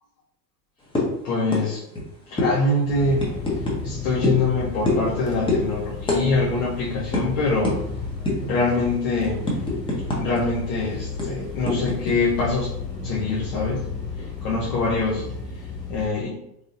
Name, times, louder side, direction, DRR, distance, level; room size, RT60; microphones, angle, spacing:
sound 1, 1.0-1.2 1.5-1.7 1.9-2.1 2.4-2.5 3.2-3.8 4.2-4.4 4.9-5.1 5.5-5.6 6.1-6.2 6.5-6.7 7.1-7.2 7.6-7.8 8.3-8.5 8.9-10.4 10.7-10.8 11.2-12.1, left 2 dB, 10° left, 0.8 m, -24 dB
voice 1, 1.2-1.8 2.3-3.3 3.8-7.8 8.4-9.4 10.2-12.7 13.0-13.8 14.4-15.2 15.9-16.4, left 3 dB, 55° left, -5 dB, 1.1 m, -24 dB
sound 2, 2.9-16.1, left 5 dB, 80° left, 1.1 m, -33 dB
3.8 x 3.3 x 2.7 m, 0.76 s
figure-of-eight pair, 80°, 50 cm